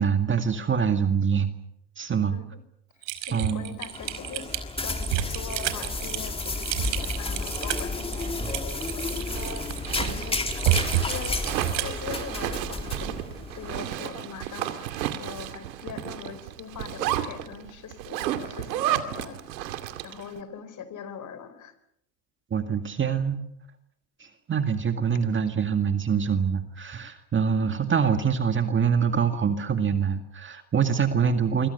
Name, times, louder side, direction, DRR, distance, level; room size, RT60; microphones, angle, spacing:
voice 1, 0.0-1.5 2.0-2.4 3.3-3.8 8.4-8.5 22.5-23.4 24.2-31.7, right 6 dB, 25° right, 7 dB, 2.0 m, -25 dB
voice 2, 2.3-2.6 3.3-9.7 10.1-10.4 11.0-11.4 11.7-13.2 13.5-19.6 20.0-21.8, left 7 dB, 35° left, 12 dB, 5.0 m, -41 dB
Typing, 3.0-12.0, right 12 dB, 60° right, 4.8 m, -30 dB
sound 1, 3.8-13.8, left 3 dB, 10° left, 2.5 m, -32 dB
Zipper (clothing), 9.1-20.3, right 12 dB, 85° right, 2.6 m, -33 dB
26.5 x 24.5 x 6.8 m, 0.76 s
supercardioid pair, 115°, 50 cm